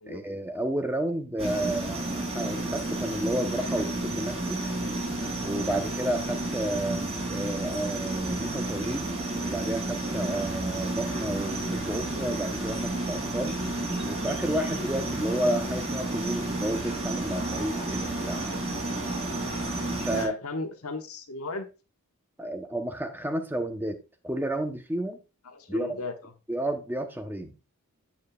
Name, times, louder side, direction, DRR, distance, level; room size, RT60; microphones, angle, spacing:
voice 1, 0.1-4.7 5.4-9.1 9.4-13.6 14.1-18.4 19.9-20.3 22.4-24.0 24.2-25.2 25.7-26.0 26.5-27.5, right 1 dB, 10° right, 0.9 m, -31 dB
sound 1, 1.4-20.3, right 2 dB, 30° right, 3.0 m, -31 dB
voice 2, 20.1-21.7 25.4-26.3, left 3 dB, 80° left, 1.3 m, -36 dB
8.6 x 7.3 x 2.4 m
head